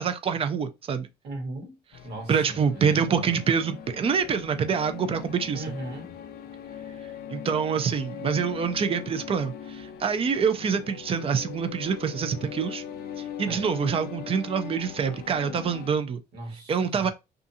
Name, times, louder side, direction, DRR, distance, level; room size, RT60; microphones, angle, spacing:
voice 1, 0.0-1.1 2.3-5.6 7.3-12.8 13.2-16.2 16.7-17.1, right 6 dB, 35° right, 0.4 m, -26 dB
voice 2, 1.2-1.8 2.0-3.4 5.5-6.1 13.5-13.6 16.3-17.1, right 2 dB, 75° right, 1.2 m, -38 dB
sound 1, 1.9-16.0, left 8 dB, 65° left, 0.4 m, -40 dB
2.6 x 2.4 x 2.6 m
cardioid pair, 110°, 17 cm